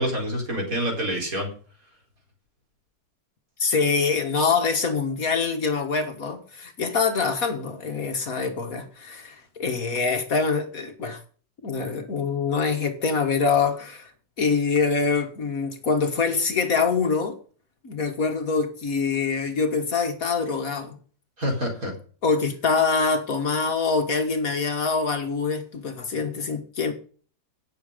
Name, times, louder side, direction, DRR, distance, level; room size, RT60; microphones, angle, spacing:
voice 1, 0.0-1.5 21.4-21.9, equal, 50° right, 4.7 m, -27 dB
voice 2, 3.6-11.2 11.6-14.1 14.4-17.4 17.8-21.0 22.2-26.9, left 4 dB, 55° left, 1.9 m, -25 dB
17.5 x 7.1 x 5.1 m
omnidirectional pair, 1.8 m